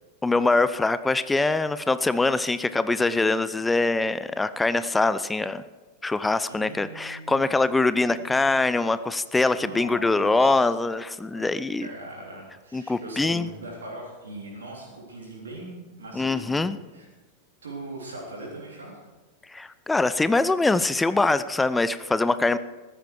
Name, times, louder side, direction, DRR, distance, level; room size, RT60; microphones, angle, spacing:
voice 1, 0.2-5.6 6.0-11.9 12.7-13.5 16.1-16.8 19.5-22.6, left 3 dB, 10° left, 14 dB, 0.5 m, -23 dB
voice 2, 6.5-7.4 8.0-8.4 9.5-10.7 11.3-11.4 11.8-17.1 17.6-18.9, right 2 dB, 70° right, -3 dB, 3.6 m, -40 dB
15.0 x 13.5 x 4.7 m, 1.2 s
figure-of-eight pair, 90°, 0 cm